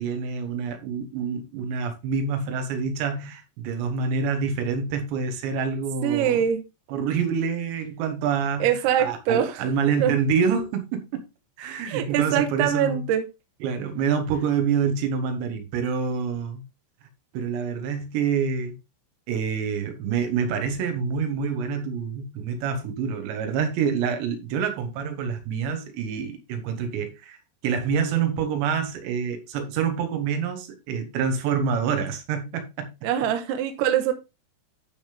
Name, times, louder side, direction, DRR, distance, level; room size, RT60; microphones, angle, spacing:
voice 1, 0.0-6.4 6.9-11.0 11.6-13.0 13.6-16.6 17.3-18.8 19.3-27.4 27.6-33.1, right 6 dB, 70° right, 3.1 m, -27 dB
voice 2, 6.0-6.6 8.6-9.5 10.0-10.1 11.9-13.3 33.0-34.1, right 9 dB, 85° right, 2.3 m, -23 dB
12.5 x 5.2 x 3.4 m
omnidirectional pair, 5.9 m